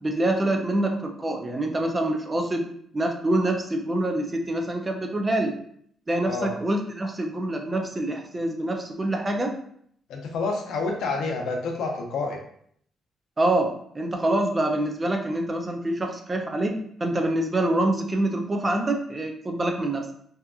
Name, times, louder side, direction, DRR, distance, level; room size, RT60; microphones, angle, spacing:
voice 1, 0.0-2.7 2.9-5.6 6.1-9.6 13.4-20.1, right 1 dB, 25° right, 3 dB, 0.5 m, -26 dB
voice 2, 10.1-12.4, left 3 dB, 80° left, 1 dB, 0.6 m, -28 dB
2.7 x 2.4 x 2.3 m, 0.65 s
cardioid pair, 90°, 0 cm